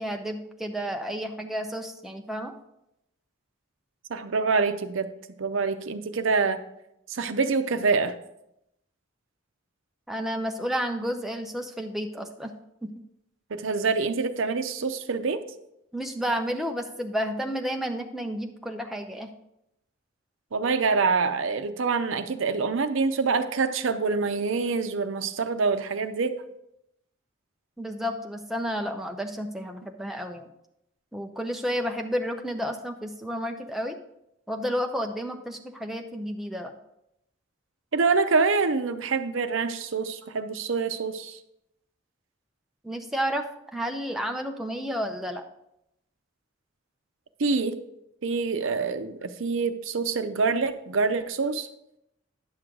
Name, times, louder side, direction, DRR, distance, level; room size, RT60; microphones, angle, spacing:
voice 1, 0.0-2.5 10.1-12.5 12.8-12.9 15.9-19.3 27.8-30.5 31.1-34.0 34.5-36.7 42.8-43.4 43.7-45.4, equal, ahead, 3 dB, 0.6 m, -31 dB
voice 2, 4.1-6.6 7.1-8.2 13.5-15.4 20.5-26.4 37.9-41.4 47.4-47.8 48.2-51.7, right 4 dB, 75° right, 9 dB, 0.6 m, -26 dB
10.0 x 6.3 x 3.7 m, 0.83 s
head